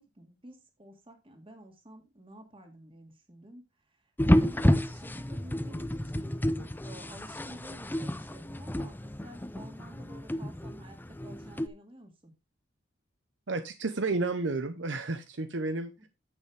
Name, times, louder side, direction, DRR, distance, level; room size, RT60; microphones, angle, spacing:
voice 1, 0.0-12.3 16.0-16.1, right 1 dB, 30° right, 4 dB, 2.4 m, -51 dB
sound 1, 4.2-11.7, left 1 dB, 10° left, 0.6 m, -30 dB
voice 2, 13.5-15.9, right 3 dB, 65° right, 9 dB, 0.9 m, -31 dB
9.7 x 8.2 x 3.4 m, 0.25 s
head